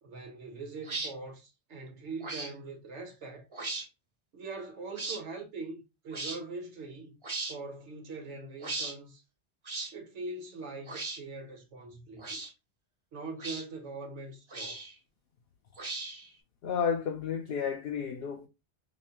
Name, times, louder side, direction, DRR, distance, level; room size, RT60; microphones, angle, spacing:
voice 1, 0.0-3.5 4.3-7.2 7.5-9.2 9.9-12.4 13.1-14.8, right 3 dB, 75° right, 1.4 m, -42 dB
sound 1, 0.8-1.1 2.2-2.5 3.5-3.9 5.0-5.2 6.1-6.4 7.2-7.6 8.6-8.9 9.7-9.9 10.9-11.2 12.2-12.5 13.4-13.6 14.5-14.9 15.8-16.3, right 3 dB, 30° right, 0.7 m, -37 dB
voice 2, 16.6-18.5, left 7 dB, 60° left, 0.8 m, -32 dB
5.2 x 2.1 x 2.8 m
omnidirectional pair, 1.2 m